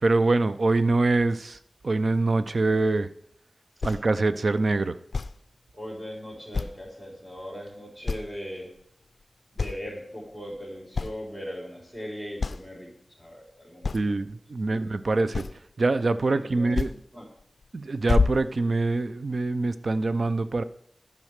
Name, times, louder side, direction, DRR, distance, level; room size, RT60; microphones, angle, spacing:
voice 1, 0.0-1.6 1.8-3.1 3.8-5.0 13.9-15.5 15.8-16.9 17.7-20.6, right 3 dB, 60° right, 13 dB, 0.5 m, -24 dB
sound 1, 3.8-4.0 5.1-5.4 6.5-6.9 7.4-7.5 8.1-8.4 8.8-9.2 9.6-9.9 10.6-10.7 11.0-11.2 12.0-12.1 12.4-12.6 13.8-14.1 15.3-15.7 16.7-17.0 17.4-17.7 18.1-19.0, left 4 dB, 70° left, 0.4 m, -27 dB
voice 2, 5.7-8.7 9.5-12.9 13.2-13.9 14.7-14.8 16.5-17.3, equal, 15° right, -1 dB, 3.8 m, -39 dB
11.0 x 5.4 x 6.5 m, 0.71 s
wide cardioid pair, 80°, 0 cm